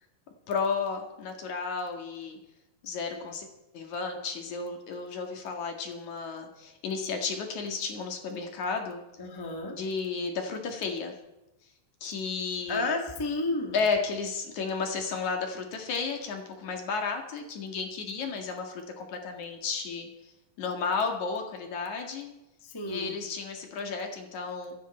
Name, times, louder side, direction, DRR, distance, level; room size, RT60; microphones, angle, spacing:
voice 1, 0.5-2.4 2.8-3.5 3.7-9.0 9.8-11.1 12.0-12.8 13.7-20.1 20.6-22.3 22.9-24.7, left 5 dB, 60° left, 3 dB, 3.1 m, -33 dB
voice 2, 9.2-9.8 12.7-13.8 22.6-23.2, left 2 dB, 10° left, 2 dB, 1.1 m, -31 dB
24.5 x 10.5 x 4.4 m, 0.94 s
omnidirectional pair, 4.0 m